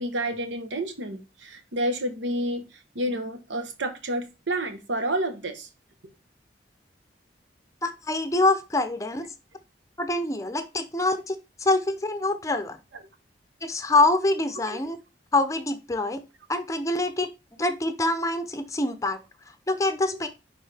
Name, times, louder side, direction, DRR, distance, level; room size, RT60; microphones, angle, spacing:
voice 1, 0.0-2.6 2.9-5.7 12.9-13.0 14.7-14.8, right 1 dB, 85° right, 8 dB, 1.2 m, -29 dB
voice 2, 7.8-9.3 10.0-12.8 13.6-15.0 15.3-16.2 16.5-17.3 17.6-19.2 19.7-20.3, left 2 dB, 15° left, 9 dB, 0.6 m, -25 dB
10.0 x 3.7 x 3.4 m, 0.28 s
head